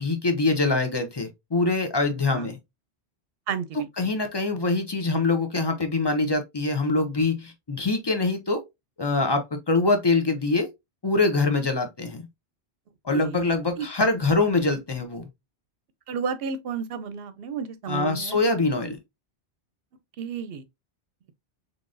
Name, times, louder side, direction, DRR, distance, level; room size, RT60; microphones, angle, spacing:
voice 1, 0.0-2.6 4.0-8.6 9.0-10.7 11.0-12.3 13.0-15.3 17.9-19.0, left 3 dB, 30° left, 0.6 m, -24 dB
voice 2, 3.5-4.1 13.1-13.4 13.8-13.9 16.1-18.4 20.2-20.6, right 6 dB, 65° right, 0.8 m, -32 dB
3.8 x 3.3 x 2.5 m
omnidirectional pair, 1.1 m